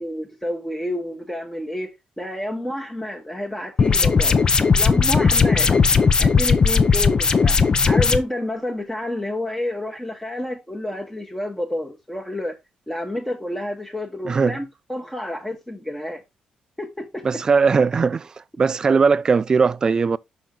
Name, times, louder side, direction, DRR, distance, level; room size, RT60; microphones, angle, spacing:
voice 1, 0.0-1.9 2.2-4.4 4.8-5.7 6.2-7.6 7.8-12.5 12.9-16.2 16.8-17.3, left 1 dB, 5° left, 1.1 m, -29 dB
sound 1, 3.8-8.2, left 5 dB, 35° left, 0.6 m, -17 dB
voice 2, 17.2-18.3 18.6-20.2, right 5 dB, 30° right, 0.3 m, -19 dB
6.0 x 5.8 x 3.7 m
cardioid pair, 135°, 2 cm